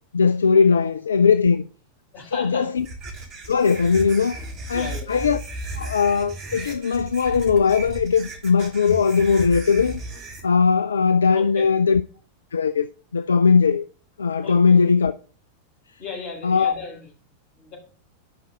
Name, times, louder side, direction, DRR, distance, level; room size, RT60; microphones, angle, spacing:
voice 1, 0.1-1.6 2.3-2.8 3.5-4.4 4.7-5.4 5.8-10.0 10.4-12.0 12.5-12.9 13.1-13.8 14.2-15.1 16.4-16.7, left 5 dB, 70° left, 0.4 m, -19 dB
voice 2, 2.1-2.7 4.7-5.1 11.3-11.7 14.4-14.8 16.0-17.1 17.5-17.8, left 4 dB, 40° left, 5.4 m, -35 dB
sound 1, 2.8-10.4, right 2 dB, 40° right, 3.3 m, -35 dB
12.0 x 5.8 x 3.4 m
figure-of-eight pair, 90°, 0 cm